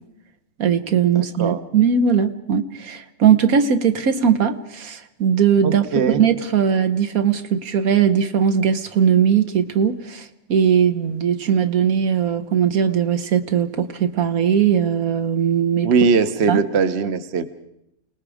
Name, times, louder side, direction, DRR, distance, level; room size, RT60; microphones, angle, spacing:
voice 1, 0.6-15.9 16.5-16.6, right 7 dB, 75° right, 8 dB, 1.5 m, -19 dB
voice 2, 1.1-1.6 5.6-6.2 15.8-17.4, right 5 dB, 50° right, 10 dB, 1.1 m, -20 dB
29.0 x 19.0 x 4.9 m, 0.81 s
omnidirectional pair, 1.5 m